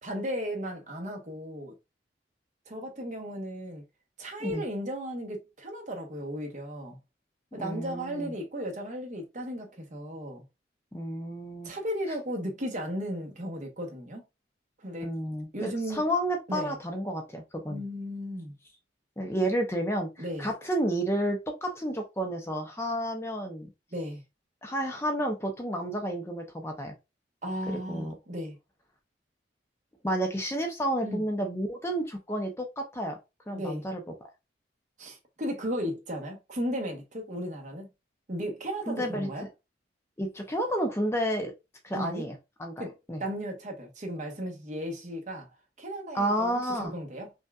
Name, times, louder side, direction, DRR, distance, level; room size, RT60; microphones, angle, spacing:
voice 1, 0.0-1.7 2.7-3.8 4.2-7.0 7.5-10.4 11.6-14.2 14.8-15.1 15.5-16.0 16.5-16.8 17.7-18.5 20.2-20.5 23.9-24.2 27.4-28.5 31.0-31.2 33.5-33.8 35.0-37.9 38.3-39.5 41.9-42.2 42.8-42.9 43.2-45.5 45.8-47.3, equal, 40° right, 1.1 m, -35 dB
voice 2, 7.6-8.3 10.9-11.8 15.0-17.8 19.2-23.7 24.6-26.9 27.7-28.1 30.0-33.2 33.5-34.0 38.9-39.3 40.2-41.5 41.8-42.7 43.1-43.2 46.1-46.9, right 1 dB, 15° left, 0.6 m, -31 dB
5.3 x 2.3 x 2.3 m
head